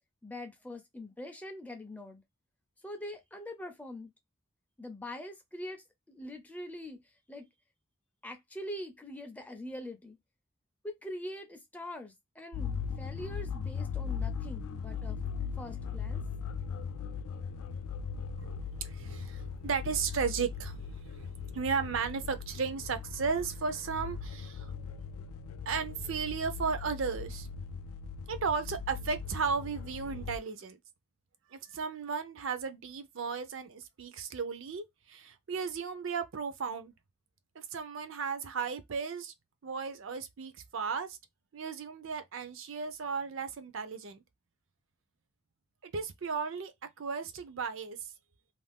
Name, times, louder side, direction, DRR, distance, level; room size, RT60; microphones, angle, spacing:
voice 1, 0.2-2.2 2.8-4.1 4.8-7.0 7.3-7.5 8.2-10.2 10.8-15.2 15.6-16.2, left 1 dB, 5° left, 0.4 m, -43 dB
sound 1, 12.5-30.4, left 6 dB, 85° left, 0.3 m, -39 dB
voice 2, 18.4-24.7 25.7-27.5 28.3-30.8 31.5-36.9 37.6-39.3 39.6-41.2 41.5-44.2 45.8-46.7 47.0-48.0, right 5 dB, 60° right, 0.5 m, -35 dB
2.5 x 2.3 x 3.4 m
head